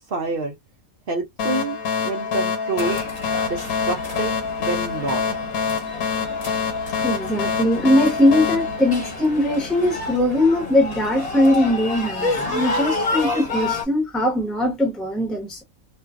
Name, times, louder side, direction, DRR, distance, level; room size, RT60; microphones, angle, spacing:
voice 1, 0.1-0.5 1.1-3.0 3.4-5.2, right 3 dB, 55° right, 0.6 m, -27 dB
sound 1, 1.4-9.7, left 6 dB, 85° left, 1.3 m, -26 dB
sound 2, 2.8-13.8, left 3 dB, 30° left, 0.9 m, -30 dB
voice 2, 7.0-15.6, left 1 dB, ahead, 0.7 m, -20 dB
2.5 x 2.4 x 2.4 m
omnidirectional pair, 1.5 m